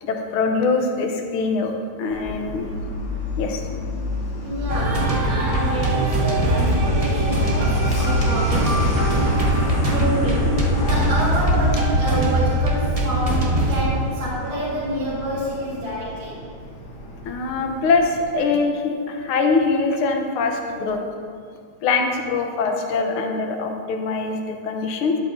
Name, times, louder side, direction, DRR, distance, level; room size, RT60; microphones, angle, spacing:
voice 1, 0.0-2.7 3.4-3.7 17.3-21.0 21.8-25.2, left 4 dB, 80° left, 3 dB, 1.7 m, -23 dB
Truck, 2.1-18.3, left 1 dB, 65° left, 1.9 m, -28 dB
voice 2, 4.4-9.4 9.9-10.6 10.9-16.4, right 1 dB, 65° right, -8 dB, 2.2 m, -28 dB
sound 1, 4.7-13.8, right 1 dB, 45° right, 0.4 m, -21 dB
11.5 x 7.9 x 2.6 m, 2.2 s
omnidirectional pair, 2.3 m